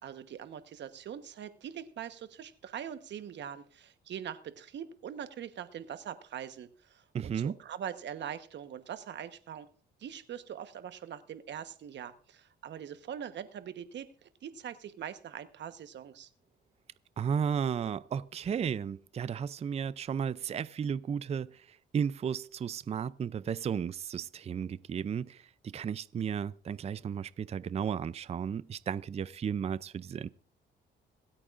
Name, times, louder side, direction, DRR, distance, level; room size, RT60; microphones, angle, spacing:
voice 1, 0.0-9.7 10.0-16.3, right 9 dB, 65° right, 1.1 m, -42 dB
voice 2, 7.1-7.5 17.2-30.3, right 7 dB, 30° right, 0.4 m, -34 dB
26.0 x 8.7 x 2.5 m
cardioid pair, 90°, 20 cm